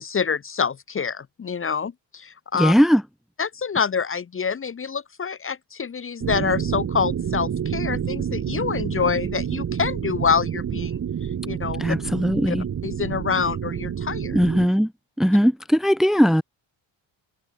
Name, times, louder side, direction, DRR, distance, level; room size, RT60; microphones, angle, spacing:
voice 1, 0.0-2.7 3.4-11.0 11.4-11.9 12.5-12.6 12.8-14.4, left 6 dB, 25° left, 1.1 m, -26 dB
voice 2, 2.6-3.0 11.8-12.7 14.3-14.9 15.2-16.4, equal, ahead, 1.0 m, -19 dB
sound 1, 6.2-14.7, right 8 dB, 35° right, 1.5 m, -28 dB
cardioid pair, 165°, 46 cm